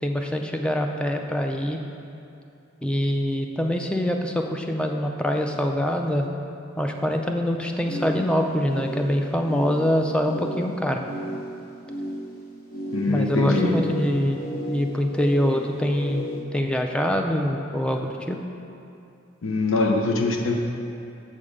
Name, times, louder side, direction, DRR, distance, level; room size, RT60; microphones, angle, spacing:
voice 1, 0.0-1.8 2.8-6.3 6.8-11.0 13.1-14.4 14.7-18.4, equal, 5° left, 3 dB, 0.4 m, -24 dB
sound 1, 7.8-16.4, equal, 45° left, 0.9 m, -34 dB
voice 2, 12.9-13.8 19.4-20.6, left 3 dB, 80° left, 2 dB, 0.7 m, -23 dB
7.4 x 3.7 x 6.5 m, 2.7 s
head